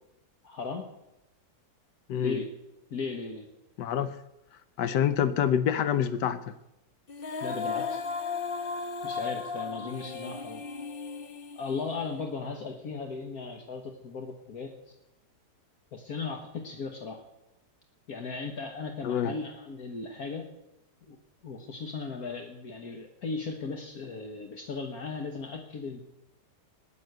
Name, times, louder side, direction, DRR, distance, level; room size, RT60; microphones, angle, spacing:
voice 1, 0.4-0.8 2.1-2.5 2.9-3.5 7.4-8.0 9.0-10.6 11.6-14.9 15.9-17.2 18.1-20.5 21.1-21.2 21.4-26.0, left 4 dB, 60° left, 1.7 m, -37 dB
voice 2, 3.8-4.2 4.8-6.4 19.0-19.3, left 9 dB, 85° left, 1.4 m, -26 dB
Female singing, 7.1-12.3, left 5 dB, 40° left, 1.0 m, -35 dB
14.0 x 10.5 x 7.9 m
omnidirectional pair, 1.8 m